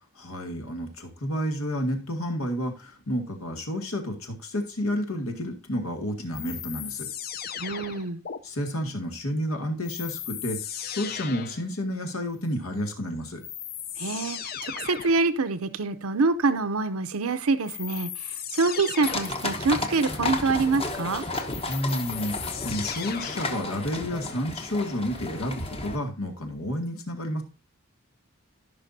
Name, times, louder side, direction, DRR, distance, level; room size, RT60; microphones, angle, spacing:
voice 1, 0.2-7.1 8.4-10.6 10.9-13.4 21.7-27.4, equal, 80° left, 4 dB, 2.0 m, -30 dB
sound 1, 6.3-8.4 9.8-11.7 12.9-13.0 13.4-15.3 17.7-19.5 21.2-23.6, left 9 dB, 45° left, 0.6 m, -37 dB
voice 2, 7.6-8.2 14.0-21.2, right 3 dB, 80° right, 11 dB, 0.7 m, -26 dB
sound 2, 19.0-26.0, left 2 dB, 25° left, 1.0 m, -33 dB
15.0 x 5.7 x 2.7 m, 0.31 s
head